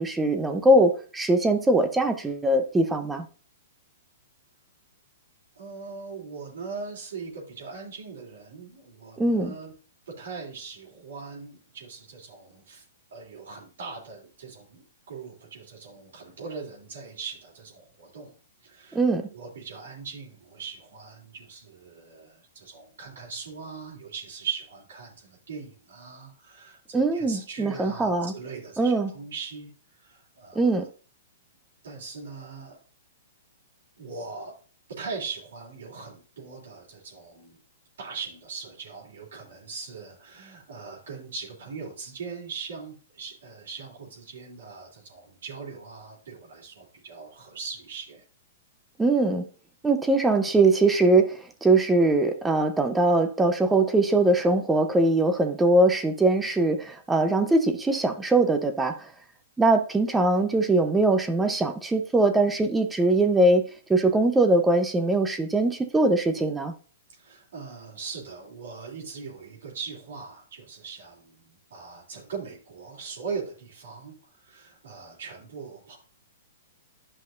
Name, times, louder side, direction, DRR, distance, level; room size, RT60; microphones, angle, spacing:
voice 1, 0.0-3.3 9.2-9.5 18.9-19.3 26.9-28.3 28.8-29.1 30.5-30.9 49.0-49.4 49.8-59.1 59.6-63.6 63.9-66.7, right 2 dB, 10° right, 0.7 m, -22 dB
voice 2, 5.5-9.7 10.2-12.8 13.1-19.0 19.3-30.9 31.8-32.8 34.0-34.5 35.0-37.6 38.0-48.2 67.1-76.0, right 5 dB, 75° right, 3.3 m, -40 dB
10.5 x 5.6 x 2.6 m
hypercardioid pair, 125°, 0 cm